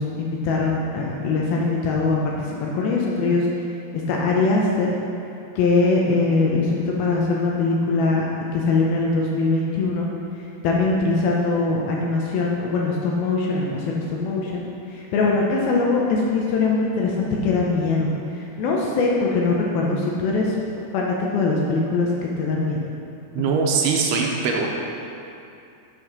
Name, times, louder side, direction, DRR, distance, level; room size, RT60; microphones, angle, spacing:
voice 1, 0.0-2.3 2.6-3.5 3.9-4.9 5.6-8.3 8.5-10.1 10.6-20.6 20.9-22.8, left 3 dB, 75° left, -2 dB, 2.4 m, -22 dB
voice 2, 23.3-24.7, right 5 dB, 80° right, 0 dB, 2.6 m, -21 dB
7.4 x 6.3 x 5.8 m, 2.6 s
omnidirectional pair, 4.9 m